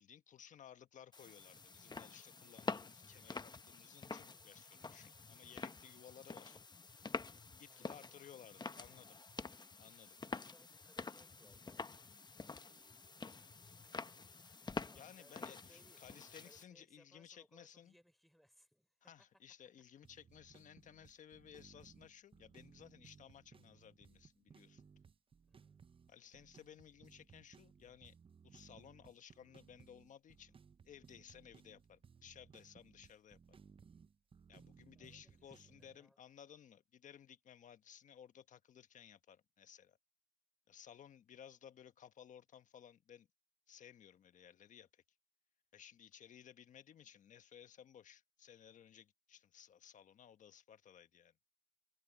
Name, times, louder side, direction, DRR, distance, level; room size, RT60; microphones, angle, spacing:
voice 1, 0.0-6.6 7.6-9.2 9.8-10.2 14.9-17.9 19.0-24.9 26.1-28.2 28.4-30.6 30.8-33.4 34.5-40.0 40.7-43.3 43.7-45.0 45.7-51.3, left 9 dB, 75° left, 1.2 m, -59 dB
sound 1, 1.1-16.6, left 4 dB, 35° left, 1.0 m, -48 dB
voice 2, 7.6-8.3 10.3-12.1 12.4-14.1 14.5-16.0 16.4-19.3 25.5-25.8 34.9-36.2, equal, ahead, 4.0 m, -70 dB
sound 2, 20.0-36.0, right 6 dB, 45° right, 0.6 m, -63 dB
cardioid pair, 60°, 13 cm